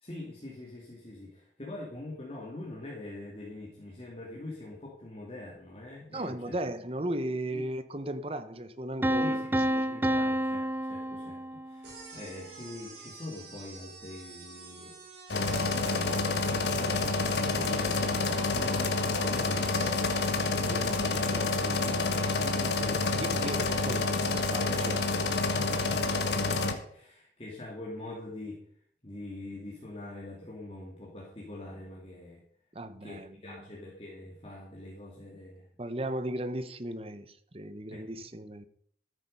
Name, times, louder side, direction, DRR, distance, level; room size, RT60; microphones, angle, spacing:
voice 1, 0.0-6.6 7.5-7.6 9.2-15.0 15.8-20.0 20.6-23.5 25.8-28.6 29.0-32.4 33.0-35.7 37.9-38.1, left 2 dB, 35° left, 2.6 m, -44 dB
voice 2, 6.1-10.0 10.3-10.4 23.0-25.0 32.7-33.6 35.8-38.6, right 1 dB, 35° right, 1.0 m, -36 dB
Piano, 9.0-11.9, right 1 dB, 10° right, 0.5 m, -29 dB
sound 1, 11.8-19.9, right 3 dB, 65° right, 4.5 m, -49 dB
sound 2, 15.3-26.7, left 3 dB, 75° left, 1.6 m, -28 dB
14.0 x 8.8 x 5.4 m
head